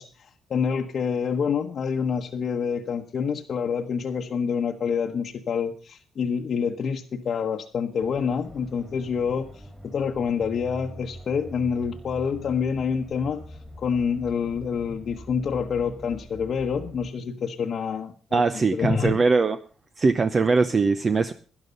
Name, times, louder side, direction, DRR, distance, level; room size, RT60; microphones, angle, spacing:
voice 1, 0.0-9.5 9.8-13.4 13.8-19.2, left 6 dB, 55° left, 2 dB, 1.0 m, -27 dB
sound 1, 8.0-17.1, right 1 dB, 5° right, 3.0 m, -44 dB
voice 2, 18.3-19.6 20.0-21.3, right 4 dB, 35° right, 10 dB, 0.7 m, -21 dB
12.0 x 11.0 x 5.4 m, 0.39 s
cardioid pair, 90°, 0 cm